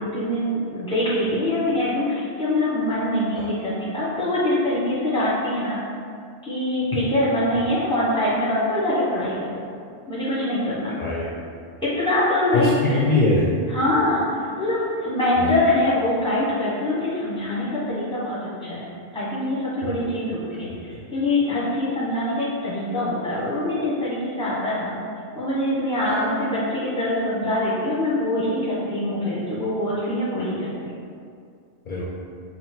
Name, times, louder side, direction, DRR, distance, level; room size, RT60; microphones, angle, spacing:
voice 1, 0.0-5.8 6.4-9.6 10.1-10.9 12.0-13.0 13.7-14.2 14.6-24.9 25.3-30.7, left 1 dB, 5° left, -8 dB, 0.9 m, -24 dB
voice 2, 10.9-11.3 12.5-13.5 15.4-15.5 20.0-20.2 26.1-26.3 31.9-32.0, left 2 dB, 55° left, -6 dB, 0.6 m, -23 dB
4.0 x 2.1 x 4.3 m, 2.3 s
omnidirectional pair, 1.1 m